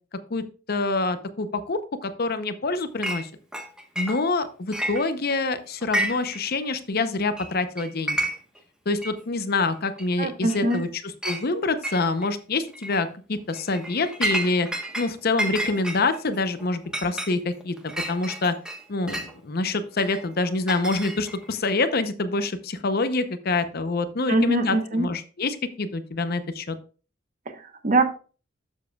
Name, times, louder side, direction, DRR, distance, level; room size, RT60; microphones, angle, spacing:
voice 1, 0.3-3.3 4.0-8.3 8.9-10.9 11.2-14.7 15.0-17.7 18.1-18.5 18.9-26.8, left 3 dB, 50° left, 11 dB, 0.7 m, -26 dB
Chink clink, 3.0-3.2 3.5-4.4 4.7-5.4 5.8-6.4 6.6-6.7 7.4-7.5 7.8-8.6 9.0-9.1 10.0-10.1 10.5-10.8 11.2-11.4 11.8-12.3 12.7-13.0 13.5-15.1 15.4-19.3 20.0-21.5, right 1 dB, 5° right, 1.1 m, -30 dB
voice 2, 10.2-10.8 24.3-25.1 27.5-28.1, right 2 dB, 40° right, 8 dB, 1.0 m, -23 dB
12.0 x 7.3 x 2.3 m, 0.37 s
head